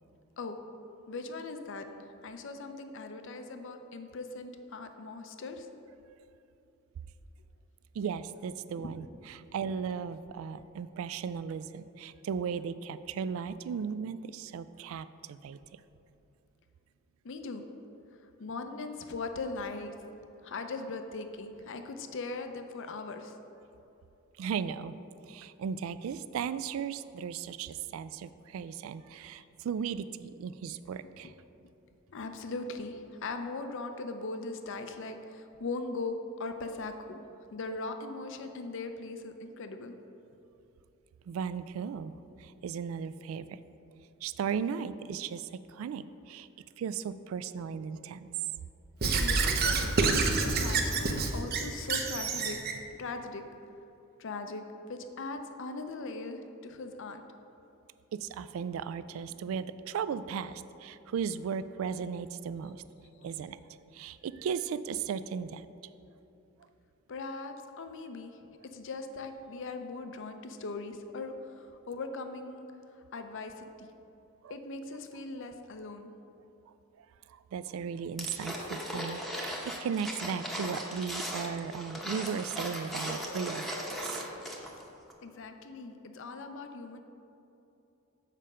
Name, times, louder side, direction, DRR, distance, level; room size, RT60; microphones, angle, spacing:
voice 1, 1.1-5.7 8.8-8.9 17.2-17.7 18.2-19.9 20.4-23.4 31.0-31.1 32.1-37.2 37.5-40.0 49.0-50.0 50.4-52.6 53.0-53.4 54.2-54.6 54.9-57.2 63.2-63.3 67.1-68.4 68.7-72.7 72.9-73.9 74.5-76.1 85.2-87.0, left 3 dB, 65° left, 7 dB, 0.6 m, -40 dB
voice 2, 7.9-15.6 24.4-25.0 25.3-31.3 41.3-42.1 42.4-43.6 44.2-46.5 46.8-48.3 58.1-62.8 63.2-63.6 63.9-65.7 74.4-74.6 77.0-84.2, right 7 dB, 75° right, 14 dB, 0.3 m, -36 dB
Squeak / Writing, 49.0-52.8, right 3 dB, 50° right, 0.7 m, -28 dB
sound 1, 78.2-84.8 85.1-85.2, equal, ahead, 0.8 m, -38 dB
7.5 x 5.0 x 5.4 m, 2.9 s
head